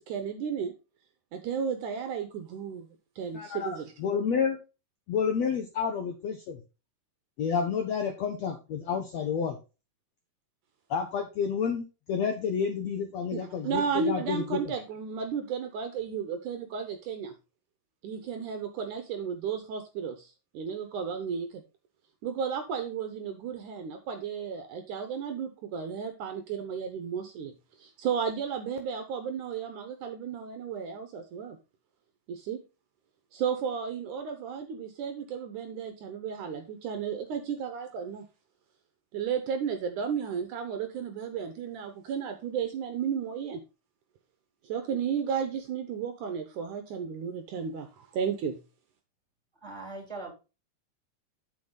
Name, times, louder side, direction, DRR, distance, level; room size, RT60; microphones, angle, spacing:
voice 1, 0.1-0.7 1.3-2.9 3.2-3.9 13.3-17.3 18.0-20.3 20.5-21.6 22.2-27.5 27.8-31.6 32.3-32.6 33.3-38.2 39.1-43.6 44.7-47.9 48.1-48.6, right 7 dB, 70° right, 7 dB, 2.2 m, -33 dB
voice 2, 3.3-3.7 4.0-4.6 5.1-6.6 7.4-9.6 10.9-14.6, left 6 dB, 65° left, 4 dB, 1.8 m, -30 dB
voice 3, 49.6-50.3, right 2 dB, 5° right, 0 dB, 3.1 m, -40 dB
8.4 x 6.3 x 3.8 m, 0.29 s
omnidirectional pair, 4.2 m